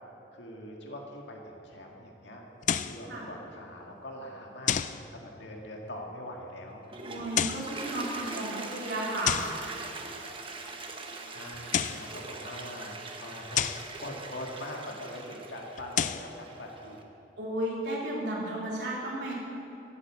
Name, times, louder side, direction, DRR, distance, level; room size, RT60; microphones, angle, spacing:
voice 1, 0.3-2.4 2.8-6.8 11.3-17.0, left 1 dB, 75° left, 0 dB, 1.7 m, -42 dB
sound 1, 2.6-3.0 4.7-5.0 7.2-7.7 9.2-9.6 11.5-12.1 13.5-13.9 15.8-16.3, left 9 dB, 40° left, 0.4 m, -29 dB
Toilet flush, 6.7-17.0, right 3 dB, 30° right, 1.1 m, -42 dB
voice 2, 7.0-9.8 17.4-19.3, right 1 dB, 70° right, -4 dB, 3.6 m, -33 dB
15.0 x 8.6 x 7.5 m, 3.0 s
head